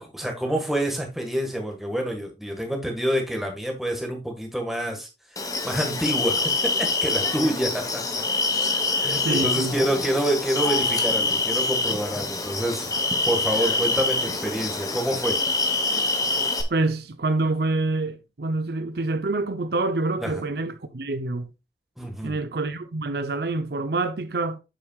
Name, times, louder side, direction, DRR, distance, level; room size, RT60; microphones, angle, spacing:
voice 1, 0.0-8.2 8.9-12.9 13.2-15.4 20.2-20.4 22.0-22.4, right 1 dB, ahead, 1.6 m, -27 dB
sound 1, 5.4-16.6, left 3 dB, 20° left, 1.0 m, -25 dB
voice 2, 9.2-9.8 16.7-21.5 22.2-24.6, right 2 dB, 60° right, 0.6 m, -26 dB
8.4 x 7.6 x 2.4 m
head